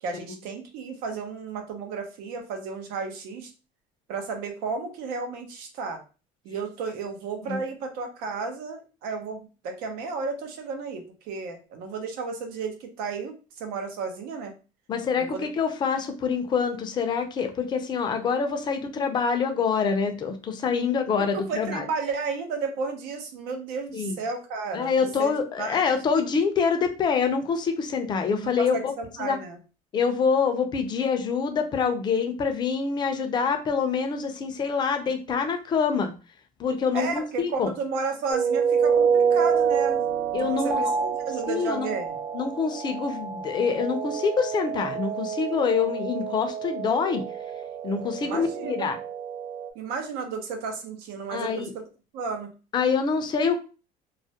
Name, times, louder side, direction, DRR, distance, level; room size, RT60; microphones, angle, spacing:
voice 1, 0.0-3.5 4.1-6.0 6.4-14.5 15.2-15.4 21.3-25.8 28.4-29.6 36.9-40.1 40.4-42.2 48.2-48.9 49.7-51.8 52.1-52.5, right 4 dB, 85° right, 5 dB, 0.7 m, -33 dB
voice 2, 14.9-21.9 23.9-24.2 24.7-28.9 29.2-29.4 29.9-36.1 36.6-37.7 40.3-40.8 41.5-41.9 42.3-47.2 47.8-49.0 51.3-51.7 52.7-53.6, left 5 dB, 30° left, 6 dB, 0.4 m, -26 dB
sound 1, 38.3-49.7, right 7 dB, 40° right, 0.4 m, -27 dB
2.3 x 2.0 x 2.7 m, 0.33 s
cardioid pair, 150°, 16 cm